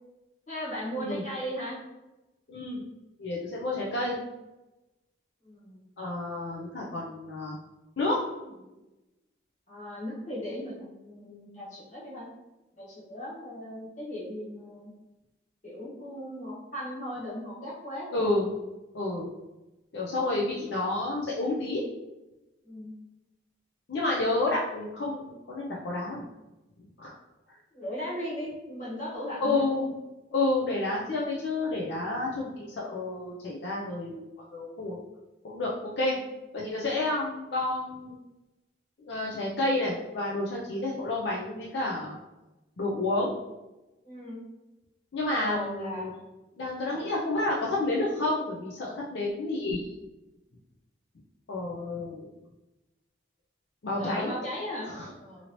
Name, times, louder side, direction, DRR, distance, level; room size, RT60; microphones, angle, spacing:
voice 1, 0.5-1.8 5.4-5.8 8.6-8.7 9.7-12.3 12.8-14.9 15.6-18.1 22.6-22.9 27.7-29.6 32.4-32.6 44.0-44.4 45.4-46.1 46.8-47.0 54.0-54.9 55.2-55.5, equal, 40° left, -7 dB, 1.2 m, -37 dB
voice 2, 2.5-2.8 3.2-4.2 6.0-7.6 8.0-8.2 18.1-18.5 18.9-19.3 19.9-21.8 23.9-26.3 27.0-27.2 29.4-29.9 30.3-34.3 34.5-35.0 35.4-36.2 36.5-38.2 39.0-42.2 42.8-43.3 45.1-46.1 46.6-50.0 51.5-52.3 53.8-54.3 54.9-55.1, left 2 dB, 70° left, -4 dB, 0.5 m, -30 dB
2.8 x 2.7 x 2.9 m, 1.0 s
head